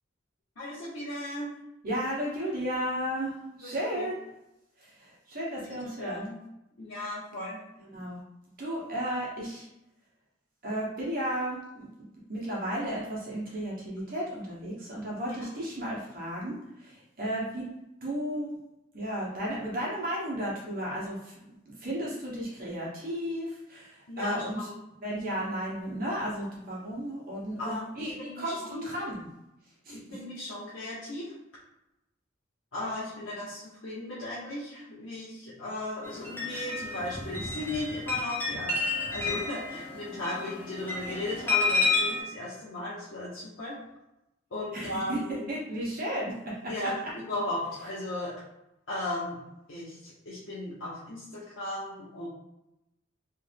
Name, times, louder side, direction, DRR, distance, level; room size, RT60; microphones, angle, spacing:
voice 1, 0.6-1.5 3.6-4.1 5.6-6.4 6.8-7.6 15.4-15.5 24.1-24.8 27.6-28.9 29.9-31.3 32.7-43.8 44.5-45.5 46.7-48.3 48.9-49.4 49.7-52.3, left 1 dB, 85° left, -9 dB, 1.0 m, -36 dB
voice 2, 1.8-4.2 4.8-6.2 7.9-8.2 8.6-9.6 10.6-11.9 12.3-17.7 18.0-18.5 18.9-21.3 21.8-24.7 25.0-29.2 29.8-30.2 44.7-45.2 45.5-46.5 46.8-46.9, equal, 45° right, -5 dB, 1.3 m, -34 dB
sound 1, 36.0-42.2, left 3 dB, 10° left, 0.9 m, -30 dB
3.4 x 2.7 x 3.5 m, 0.90 s
head